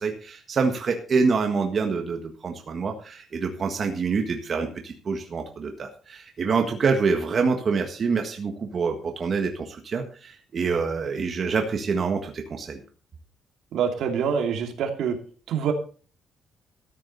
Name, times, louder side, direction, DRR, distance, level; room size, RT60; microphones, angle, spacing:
voice 1, 0.0-12.8, right 5 dB, 35° right, 4 dB, 1.6 m, -26 dB
voice 2, 13.7-15.2 15.5-15.7, right 7 dB, 70° right, 4 dB, 2.7 m, -25 dB
14.0 x 10.0 x 4.1 m, 0.39 s
cardioid pair, 165°, 0 cm